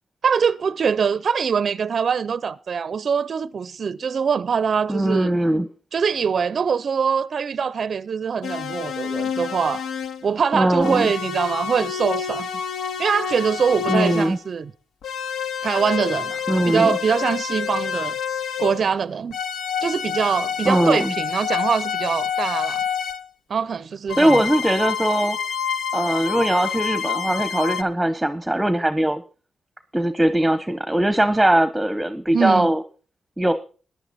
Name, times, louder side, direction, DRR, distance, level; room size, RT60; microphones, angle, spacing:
voice 1, 0.2-5.3 5.9-9.8 10.2-12.5 13.0-14.7 15.6-18.2 18.6-19.4 19.8-22.8 23.5-24.4 32.3-32.7, right 6 dB, 60° right, 0.5 m, -23 dB
voice 2, 4.9-5.7 10.5-11.1 13.9-14.4 16.5-17.0 20.6-21.1 24.2-25.4 25.9-29.2 29.9-32.8 33.4-33.5, right 1 dB, 10° right, 1.0 m, -20 dB
sound 1, 8.4-10.3 10.8-14.4 15.0-18.9 19.3-23.3 24.1-27.8, left 7 dB, 85° left, 0.7 m, -28 dB
14.0 x 10.0 x 4.1 m
cardioid pair, 65°, 0 cm